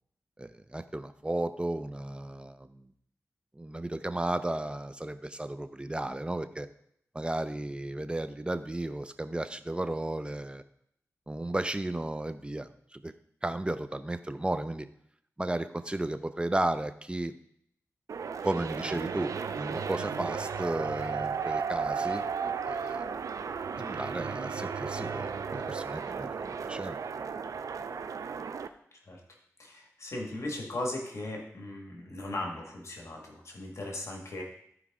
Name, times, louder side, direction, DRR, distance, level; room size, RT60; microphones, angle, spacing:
voice 1, 0.4-2.9 3.6-6.7 7.1-10.6 11.3-13.1 13.4-14.9 15.4-17.3 18.4-22.2 22.6-23.0 23.8-27.0, right 1 dB, 20° right, 11 dB, 0.6 m, -34 dB
sound 1, 18.1-28.7, right 6 dB, 80° right, 0.5 m, -34 dB
voice 2, 29.6-34.4, left 1 dB, 60° left, 0 dB, 1.8 m, -37 dB
13.5 x 4.8 x 3.7 m, 0.70 s
cardioid pair, 60°, 6 cm